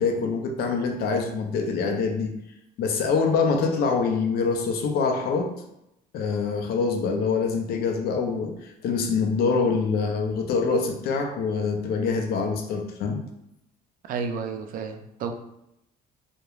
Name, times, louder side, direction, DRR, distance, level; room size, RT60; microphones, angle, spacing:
voice 1, 0.0-2.3 2.8-5.5 6.1-13.2, left 4 dB, 65° left, 4 dB, 0.5 m, -25 dB
voice 2, 14.1-15.3, right 5 dB, 55° right, 5 dB, 0.4 m, -31 dB
2.9 x 2.1 x 2.3 m, 0.83 s
cardioid pair, 110°, 17 cm